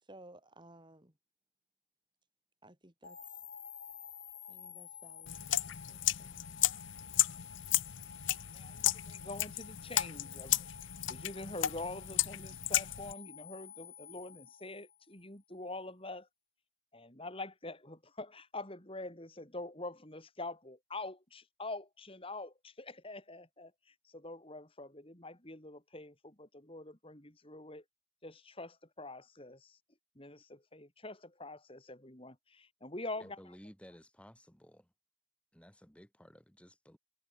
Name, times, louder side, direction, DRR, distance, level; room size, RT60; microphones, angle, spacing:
voice 1, 0.0-1.2 2.6-3.2 4.5-6.4, right 1 dB, 20° right, 2.6 m, -57 dB
sound 1, 3.0-15.2, left 8 dB, 45° left, 4.8 m, -51 dB
sound 2, 5.3-13.1, left 14 dB, 60° left, 0.7 m, -34 dB
voice 2, 8.5-10.7 11.1-16.3 16.9-27.8 28.2-29.8 30.2-33.4, left 2 dB, 25° left, 3.4 m, -45 dB
voice 3, 33.2-34.9 35.5-37.0, equal, 5° left, 4.4 m, -56 dB
head